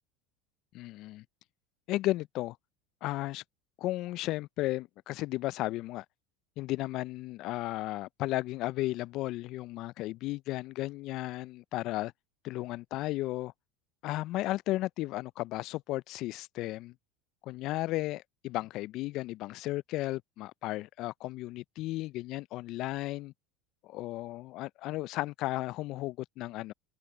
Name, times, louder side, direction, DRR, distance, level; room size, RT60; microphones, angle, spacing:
voice 1, 0.7-1.2 1.9-2.6 3.0-3.4 3.8-6.0 6.6-12.1 12.4-13.5 14.0-16.9 17.4-23.3 23.8-26.7, left 17 dB, 55° left, 0.4 m, -34 dB
hypercardioid pair, 90°, 0 cm